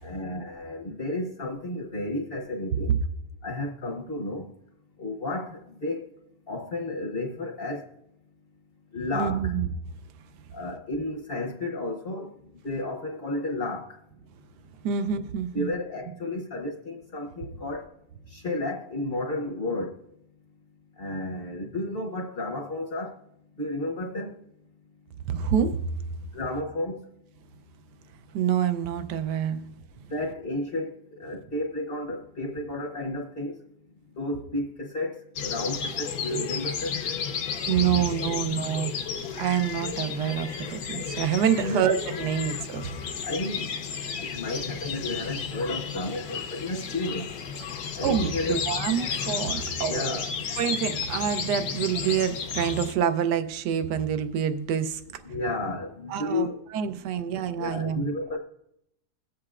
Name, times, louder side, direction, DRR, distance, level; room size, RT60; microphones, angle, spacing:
voice 1, 0.0-2.9 3.4-4.5 5.0-6.0 6.5-7.9 8.9-9.5 10.5-12.3 12.6-14.0 15.5-17.8 18.3-19.9 21.0-23.1 23.6-24.3 26.3-27.0 29.5-29.6 30.1-30.9 31.2-33.5 34.2-37.0 41.6-41.8 43.2-43.7 44.2-47.3 47.9-48.6 49.7-50.3 55.2-56.6 57.5-58.4, left 2 dB, 45° left, 0.9 m, -32 dB
voice 2, 9.1-9.7 14.8-15.7 25.3-25.8 28.3-29.8 37.7-38.9 39.4-42.9 48.0-50.2 50.6-55.2 56.1-56.5 56.7-58.1, right 8 dB, 75° right, 1.2 m, -27 dB
sound 1, 35.4-52.9, left 6 dB, 70° left, 1.3 m, -33 dB
22.0 x 7.8 x 2.4 m
omnidirectional pair, 1.9 m